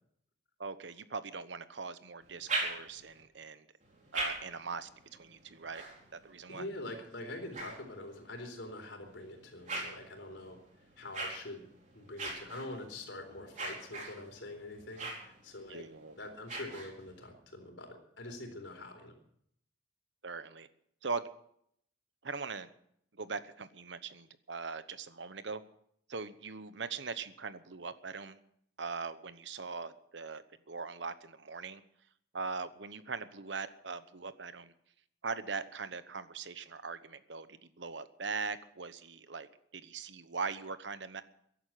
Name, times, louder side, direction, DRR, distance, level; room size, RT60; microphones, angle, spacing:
voice 1, 0.6-3.7 4.1-5.8 6.2-6.7 15.7-16.2 20.2-20.7 21.0-21.3 22.2-22.7 23.1-25.6 26.1-28.4 28.8-31.8 32.3-34.7 35.2-41.2, right 4 dB, 70° right, 13 dB, 1.0 m, -41 dB
sound 1, 2.2-3.2 3.8-8.4 9.0-17.3, right 2 dB, 40° right, 4.5 m, -43 dB
voice 2, 6.5-10.6 11.0-11.7 11.9-15.8 16.2-19.1, left 2 dB, 75° left, 5 dB, 4.0 m, -45 dB
15.5 x 11.5 x 7.7 m, 0.70 s
head